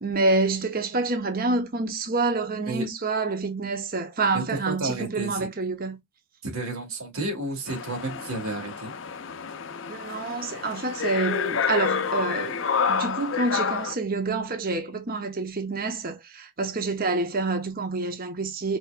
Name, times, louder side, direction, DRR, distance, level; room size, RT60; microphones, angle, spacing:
voice 1, 0.0-6.0 9.9-18.8, right 3 dB, 40° right, 1.0 m, -27 dB
voice 2, 4.3-5.5 6.4-8.9, right 2 dB, 85° right, 2.5 m, -31 dB
sound 1, 7.7-14.0, left 6 dB, 60° left, 0.5 m, -29 dB
4.5 x 4.3 x 2.3 m
head